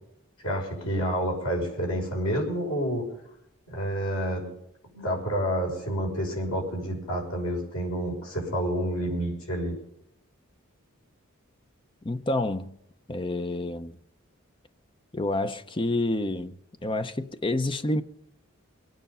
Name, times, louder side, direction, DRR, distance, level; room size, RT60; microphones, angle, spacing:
voice 1, 0.4-3.1 3.7-4.5 4.9-9.7, equal, 75° left, 6.1 m, -29 dB
voice 2, 12.0-12.7 13.1-14.0 15.1-18.0, left 2 dB, 20° left, 0.6 m, -28 dB
22.5 x 9.4 x 5.6 m
head